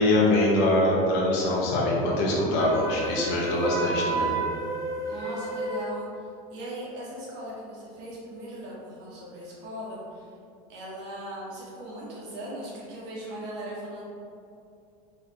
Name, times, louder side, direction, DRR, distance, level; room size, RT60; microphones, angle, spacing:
voice 1, 0.0-4.3, left 1 dB, 60° left, -4 dB, 1.2 m, -23 dB
Wind instrument woodwind instrument, 2.6-6.0, right 2 dB, 15° left, 0.8 m, -31 dB
voice 2, 5.0-10.3 10.7-14.0, right 1 dB, 60° right, -7 dB, 1.4 m, -39 dB
3.9 x 3.6 x 3.2 m, 2.5 s
supercardioid pair, 130°, 20 cm